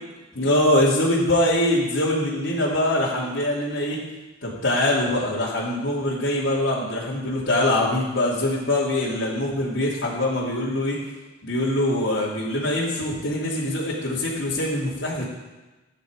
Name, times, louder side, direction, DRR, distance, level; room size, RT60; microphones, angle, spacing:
voice 1, 0.3-4.0 4.4-11.0 11.4-15.3, left 1 dB, 75° left, -8 dB, 2.9 m, -23 dB
15.0 x 9.9 x 5.1 m, 1.1 s
head